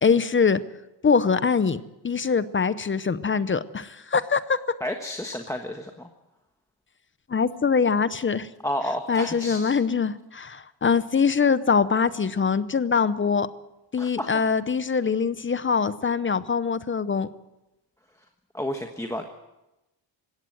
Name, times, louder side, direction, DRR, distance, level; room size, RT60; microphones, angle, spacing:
voice 1, 0.0-0.6 1.0-4.6 7.3-8.5 9.1-13.5 13.9-17.3, left 5 dB, 25° left, 15 dB, 0.7 m, -23 dB
voice 2, 4.8-6.1 8.6-9.7 14.0-14.5 18.5-19.3, left 1 dB, 5° left, 3 dB, 1.3 m, -31 dB
21.0 x 17.0 x 7.9 m, 0.98 s
cardioid pair, 120°, 46 cm